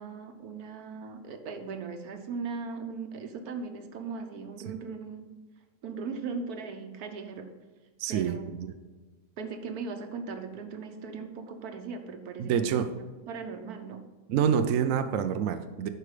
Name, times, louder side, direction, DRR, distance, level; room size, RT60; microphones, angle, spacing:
voice 1, 0.0-5.3 5.8-7.5 8.1-8.5 9.4-12.9 13.3-14.0, right 4 dB, 90° right, 7 dB, 1.5 m, -38 dB
voice 2, 8.0-8.7 12.4-12.9 14.3-15.9, right 8 dB, 70° right, 8 dB, 0.9 m, -27 dB
11.0 x 5.0 x 5.0 m, 1.3 s
omnidirectional pair, 1.5 m